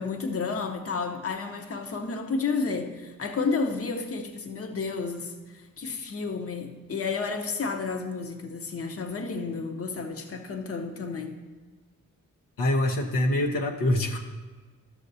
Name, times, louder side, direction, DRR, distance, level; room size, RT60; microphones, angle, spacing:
voice 1, 0.0-11.3, left 4 dB, 45° left, 4 dB, 0.9 m, -31 dB
voice 2, 12.6-14.2, left 1 dB, 80° left, 1 dB, 1.0 m, -25 dB
13.0 x 6.5 x 2.7 m, 1.4 s
cardioid pair, 85°, 33 cm